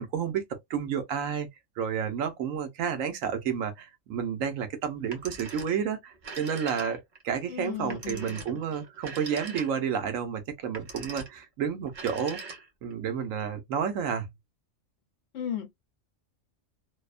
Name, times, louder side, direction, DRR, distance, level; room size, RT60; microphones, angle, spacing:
voice 1, 0.0-1.5 1.8-12.4 12.8-14.3, right 7 dB, 80° right, 1.1 m, -31 dB
Telephone, 5.0-5.8 6.1-7.2 7.9-10.0 10.6-11.4 11.9-12.9, right 4 dB, 50° right, 0.7 m, -42 dB
voice 2, 7.5-8.6 15.3-15.7, left 9 dB, 60° left, 0.9 m, -36 dB
2.8 x 2.1 x 2.3 m
omnidirectional pair, 1.3 m